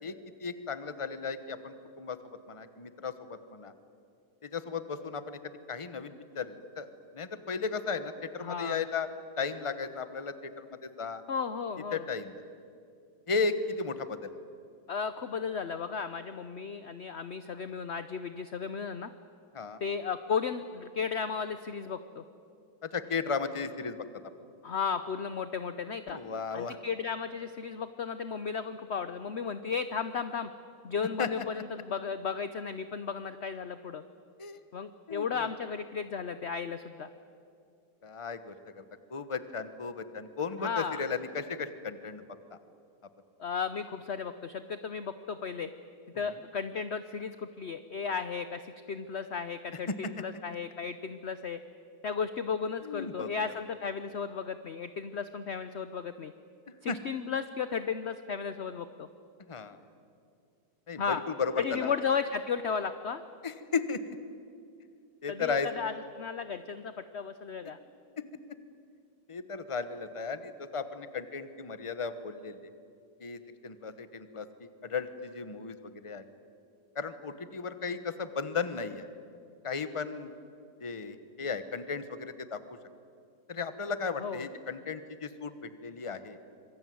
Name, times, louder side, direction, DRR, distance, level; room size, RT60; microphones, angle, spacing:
voice 1, 0.0-2.2 2.5-3.7 4.4-5.4 5.7-6.9 7.1-9.1 9.4-11.2 11.9-12.3 13.3-14.3 19.5-19.8 22.8-24.0 26.1-26.8 31.2-31.4 34.4-34.6 35.1-35.5 38.0-38.8 39.1-42.2 42.5-42.6 46.1-46.3 49.9-50.1 52.8-53.3 56.9-57.0 59.5-59.8 60.9-61.9 63.4-64.0 65.2-65.7 68.2-68.3 69.3-72.6 73.2-76.2 76.9-79.1 79.6-80.3 80.8-82.6 83.5-86.4, left 5 dB, 20° left, 11 dB, 1.0 m, -35 dB
voice 2, 8.4-8.8 11.3-12.0 14.9-19.1 19.8-22.2 24.6-26.2 26.5-30.5 30.8-34.0 34.7-37.1 40.6-41.0 43.4-45.7 46.2-51.6 52.0-56.3 56.8-59.1 61.0-61.2 61.6-63.2 65.3-67.8 84.2-84.4, left 6 dB, 50° left, 11 dB, 0.8 m, -34 dB
26.0 x 22.5 x 9.4 m, 2.4 s
omnidirectional pair, 1.9 m